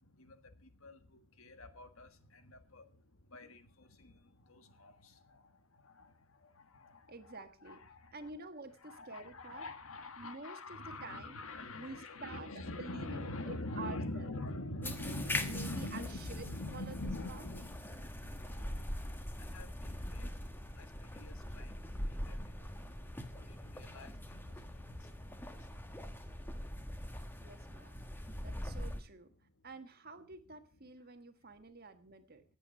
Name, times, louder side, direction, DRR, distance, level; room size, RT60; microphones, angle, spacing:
voice 1, 0.2-2.9 3.3-5.4 5.8-6.1 6.4-7.1 7.6-8.1 8.8-25.8, left 2 dB, 75° left, 9 dB, 1.6 m, -45 dB
voice 2, 7.1-7.8 8.1-9.7 10.2-11.4 11.7-14.4 14.7-17.5 27.4-29.3 29.6-32.4, right 3 dB, 45° right, 9 dB, 1.4 m, -49 dB
sound 1, 14.8-29.0, left 1 dB, 10° left, 1.1 m, -42 dB
18.5 x 8.0 x 5.4 m, 0.41 s
head